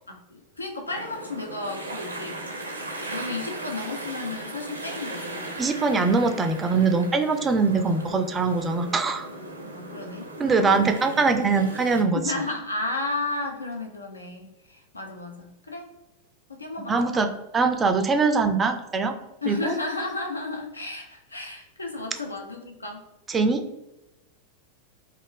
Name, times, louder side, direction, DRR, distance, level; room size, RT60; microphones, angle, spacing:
voice 1, 0.1-2.4 3.1-5.5 9.7-10.8 12.1-15.9 16.5-17.3 19.4-23.0, left 3 dB, 80° left, 2 dB, 0.4 m, -33 dB
sound 1, 0.9-12.0, right 2 dB, 80° right, 0.5 m, -37 dB
voice 2, 5.6-9.3 10.4-12.3 16.9-19.1 19.5-19.8 23.3-23.6, right 4 dB, 20° right, 7 dB, 0.3 m, -22 dB
2.5 x 2.1 x 3.4 m, 0.95 s
figure-of-eight pair, 90°, 0 cm